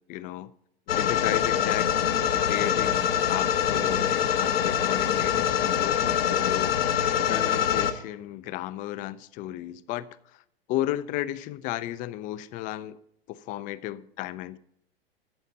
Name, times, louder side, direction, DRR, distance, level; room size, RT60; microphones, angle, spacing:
voice 1, 0.1-0.5 0.9-6.8 7.3-10.4 10.7-13.0 13.3-14.6, left 14 dB, 25° left, 0.4 m, -34 dB
sound 1, 0.9-7.9, left 9 dB, 70° left, 1.1 m, -24 dB
13.5 x 7.3 x 4.0 m
figure-of-eight pair, 105°, 31 cm